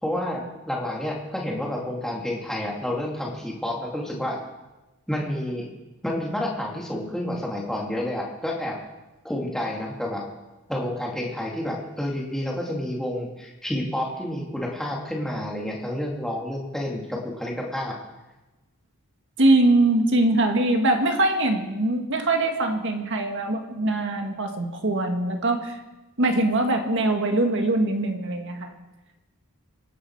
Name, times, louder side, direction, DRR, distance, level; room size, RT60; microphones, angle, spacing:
voice 1, 0.0-4.4 5.1-5.7 6.0-8.8 9.2-10.2 10.7-18.0, left 1 dB, ahead, -2 dB, 2.7 m, -29 dB
voice 2, 19.4-25.8 26.2-28.7, right 2 dB, 55° right, 4 dB, 1.9 m, -22 dB
25.0 x 11.0 x 4.8 m, 1.1 s
head